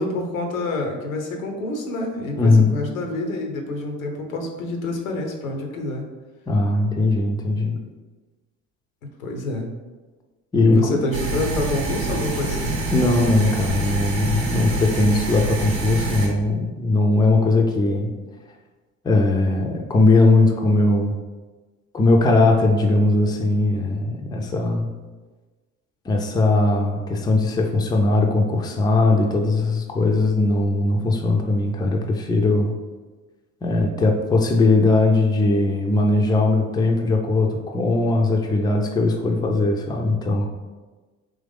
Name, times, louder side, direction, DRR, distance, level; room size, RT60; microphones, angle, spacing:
voice 1, 0.0-6.1 9.2-9.7 10.7-12.7, left 2 dB, 80° left, 3 dB, 0.7 m, -27 dB
voice 2, 2.4-2.8 6.5-7.8 10.5-11.0 12.9-18.2 19.0-21.2 21.9-25.0 26.1-32.7 33.6-40.5, left 2 dB, 10° left, 2 dB, 0.4 m, -19 dB
sound 1, 11.1-16.3, right 2 dB, 85° right, 0.8 m, -26 dB
3.7 x 3.0 x 3.4 m, 1.3 s
figure-of-eight pair, 60°, 40 cm